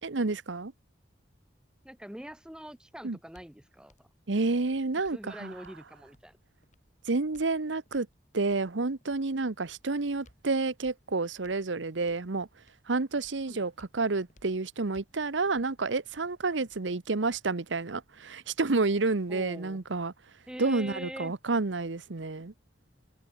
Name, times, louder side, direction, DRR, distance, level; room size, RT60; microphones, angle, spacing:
voice 1, 0.0-0.7 3.0-3.2 4.3-5.5 7.0-8.1 8.3-12.5 12.9-20.1 20.6-22.5, right 3 dB, 90° right, 1.0 m, -29 dB
voice 2, 1.8-4.1 5.1-6.4 13.5-13.6 19.3-19.8 20.5-21.3, equal, 5° right, 0.9 m, -44 dB
sound 1, 2.6-18.2, left 1 dB, 40° left, 6.1 m, -65 dB
open air
head